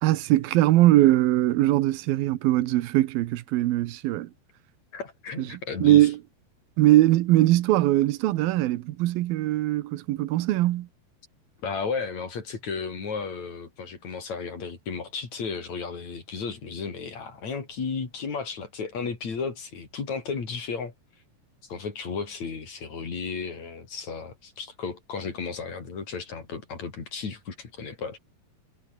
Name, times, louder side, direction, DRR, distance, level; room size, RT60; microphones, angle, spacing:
voice 1, 0.0-4.3 5.5-6.2 6.8-10.9, right 16 dB, 90° right, 2.8 m, -21 dB
voice 2, 4.9-6.1 11.6-20.9 21.7-28.2, left 5 dB, 50° left, 5.2 m, -34 dB
omnidirectional pair, 4.1 m